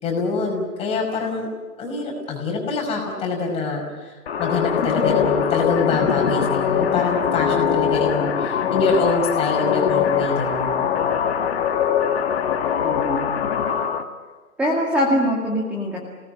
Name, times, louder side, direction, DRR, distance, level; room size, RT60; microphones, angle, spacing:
voice 1, 0.0-1.5 1.8-4.1 4.4-10.9, left 3 dB, 15° left, 0 dB, 5.3 m, -25 dB
sound 1, 4.3-14.0, left 8 dB, 40° left, 1.9 m, -22 dB
voice 2, 12.8-13.5 14.6-16.0, equal, 5° right, -2 dB, 2.2 m, -23 dB
30.0 x 19.0 x 9.0 m, 1.4 s
hypercardioid pair, 150°, 45 cm